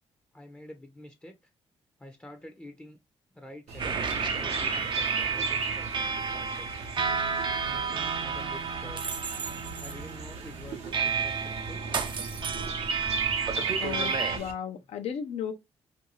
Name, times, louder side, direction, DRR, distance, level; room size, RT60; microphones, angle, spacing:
voice 1, 0.3-1.4 2.0-3.0 3.3-6.7 7.7-9.0 9.8-11.9, left 1 dB, 10° left, 0.6 m, -48 dB
Chirp tweet, 3.7-14.5, right 4 dB, 80° right, 0.7 m, -36 dB
sound 1, 3.8-14.4, right 6 dB, 45° right, 0.5 m, -31 dB
voice 2, 13.8-15.5, left 8 dB, 70° left, 0.6 m, -35 dB
2.6 x 2.3 x 2.9 m
cardioid pair, 70°, 11 cm